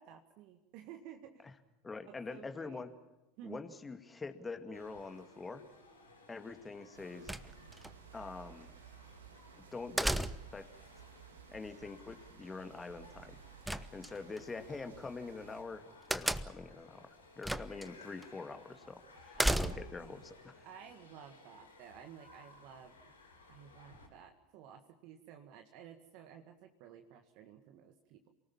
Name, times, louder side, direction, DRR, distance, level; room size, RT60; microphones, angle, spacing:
voice 1, 0.0-1.5 2.0-2.8 3.4-3.7 19.4-20.3 20.6-23.1 23.5-28.3, right 9 dB, 55° right, 5 dB, 1.9 m, -54 dB
voice 2, 1.8-2.9 3.4-5.6 6.3-7.3 8.1-8.7 9.7-10.7 11.5-13.4 13.9-20.7, left 4 dB, 15° left, 7 dB, 2.2 m, -45 dB
sound 1, 4.7-24.1, left 3 dB, 85° left, 6.2 m, -59 dB
sound 2, 6.9-15.6, right 8 dB, 75° right, 2.3 m, -57 dB
sound 3, 7.3-7.9 10.0-10.7 13.7-14.4 16.1-16.7 17.4-17.9 18.2-18.3 19.4-20.1, right 1 dB, 5° right, 1.1 m, -34 dB
28.0 x 19.0 x 7.3 m, 1.0 s
figure-of-eight pair, 80°, 0 cm